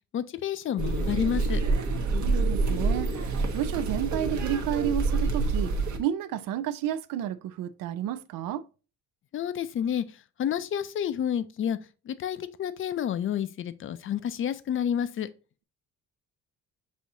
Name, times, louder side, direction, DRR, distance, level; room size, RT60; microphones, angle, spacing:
voice 1, 0.1-1.6 9.3-10.0 10.4-11.8 12.1-15.3, left 9 dB, 40° left, 0.4 m, -29 dB
sound 1, 0.8-6.0, right 3 dB, 55° right, 1.0 m, -27 dB
voice 2, 2.1-8.6, right 11 dB, 75° right, 0.5 m, -31 dB
6.2 x 2.7 x 2.6 m
cardioid pair, 110°, 33 cm